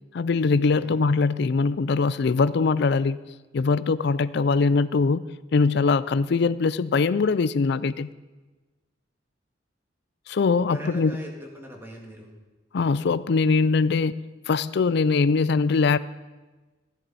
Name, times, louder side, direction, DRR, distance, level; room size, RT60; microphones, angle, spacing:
voice 1, 0.1-3.2 3.5-5.3 5.5-8.1 10.3-11.1 12.7-14.1 14.5-16.0, left 4 dB, 60° left, 0.4 m, -22 dB
voice 2, 10.7-12.4, equal, 10° right, 2.0 m, -41 dB
15.5 x 11.0 x 4.2 m
head